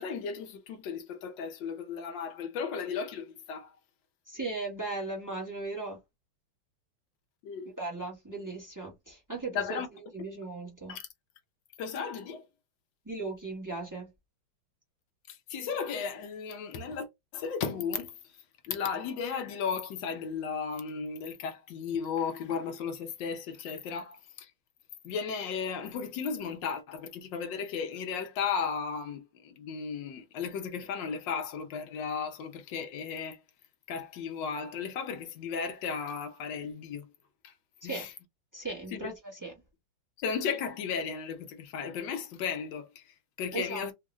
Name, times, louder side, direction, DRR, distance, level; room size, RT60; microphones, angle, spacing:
voice 1, 0.0-3.7 7.4-7.7 9.5-9.9 10.9-11.1 11.8-12.4 15.3-17.1 17.3-18.1 18.6-24.5 25.0-33.4 33.9-37.1 37.4-37.5 37.8-38.1 38.9-39.1 40.2-43.9, left 6 dB, 70° left, 1.3 m, -35 dB
voice 2, 4.3-6.0 7.8-9.8 10.1-10.9 13.0-14.1 37.8-38.1 38.5-39.5 43.5-43.9, right 3 dB, 15° right, 0.7 m, -37 dB
3.6 x 2.4 x 3.0 m
omnidirectional pair, 2.3 m